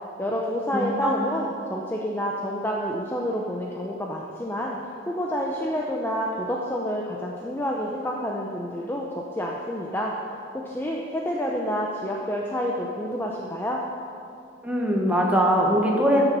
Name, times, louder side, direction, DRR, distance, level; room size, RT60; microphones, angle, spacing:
voice 1, 0.2-4.8 5.1-10.1 10.5-13.8, equal, 10° left, -2 dB, 0.6 m, -28 dB
voice 2, 0.7-1.1 14.6-16.2, equal, 5° right, -2 dB, 1.4 m, -21 dB
13.0 x 6.9 x 5.5 m, 2.5 s
head